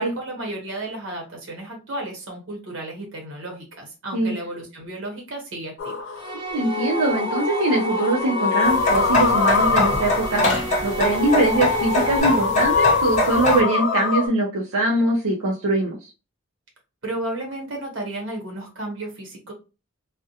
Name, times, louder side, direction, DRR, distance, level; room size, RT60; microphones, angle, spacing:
voice 1, 0.0-6.1 17.0-19.5, right 1 dB, 60° right, 0 dB, 1.0 m, -33 dB
sound 1, 5.8-14.3, left 4 dB, 60° left, 0.4 m, -23 dB
sound 2, 6.2-12.2, right 4 dB, 20° right, 0.3 m, -34 dB
voice 2, 6.3-16.1, right 2 dB, 85° right, -1 dB, 0.5 m, -22 dB
sound 3, 8.6-13.6, left 1 dB, 35° left, 0.8 m, -24 dB
2.3 x 2.1 x 2.7 m, 0.32 s
head